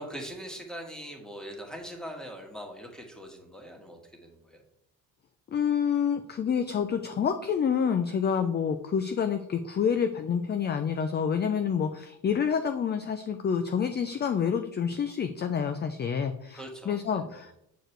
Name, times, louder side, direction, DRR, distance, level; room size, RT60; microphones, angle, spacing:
voice 1, 0.0-4.6 16.5-17.4, equal, ahead, 2 dB, 1.7 m, -42 dB
voice 2, 5.5-17.5, left 7 dB, 30° left, 8 dB, 0.5 m, -28 dB
8.2 x 4.6 x 4.5 m, 0.78 s
cardioid pair, 105°, 34 cm